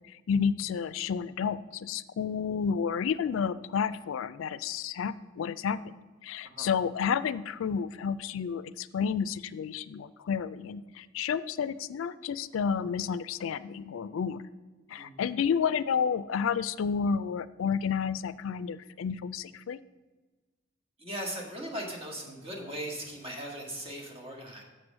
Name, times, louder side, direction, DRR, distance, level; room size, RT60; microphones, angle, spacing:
voice 1, 0.3-14.4 14.9-19.8, left 6 dB, 70° left, 16 dB, 0.3 m, -31 dB
voice 2, 21.0-24.6, right 1 dB, 30° right, -1 dB, 1.7 m, -38 dB
6.8 x 6.2 x 6.1 m, 1.3 s
head